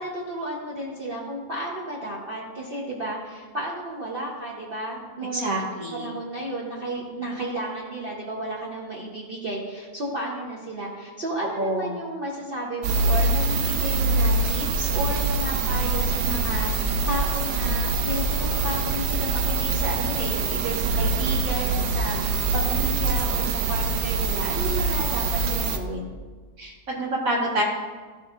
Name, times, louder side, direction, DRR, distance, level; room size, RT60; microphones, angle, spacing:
voice 1, 0.0-5.6 5.9-26.1, right 1 dB, 40° right, -5 dB, 1.0 m, -32 dB
voice 2, 5.3-6.1 11.6-12.0 26.6-27.6, right 1 dB, 60° right, -2 dB, 1.4 m, -27 dB
sound 1, 12.8-25.8, right 3 dB, 85° right, 1.2 m, -24 dB
13.0 x 5.7 x 2.5 m, 1.5 s
omnidirectional pair, 1.7 m